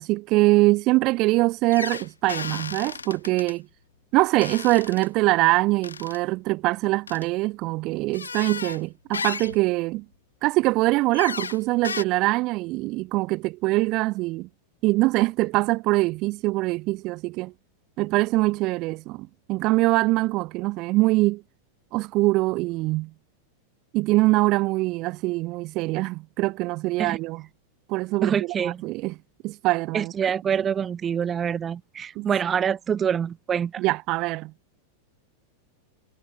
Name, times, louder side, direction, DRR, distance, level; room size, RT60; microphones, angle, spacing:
voice 1, 0.0-3.7 4.1-10.0 10.4-14.5 14.8-17.5 18.0-21.4 21.9-23.1 23.9-27.4 27.9-29.1 29.4-30.1 32.1-32.3 33.8-34.5, right 21 dB, 40° right, 4.7 m, -23 dB
sound 1, 1.7-3.5 4.4-5.1 5.8-6.2 7.1-7.3 8.1-8.8 9.1-9.6 11.1-11.6 11.8-12.0, left 5 dB, 75° left, 1.8 m, -34 dB
voice 2, 28.2-28.8 29.9-33.8, right 8 dB, 20° right, 0.9 m, -26 dB
figure-of-eight pair, 90°, 0 cm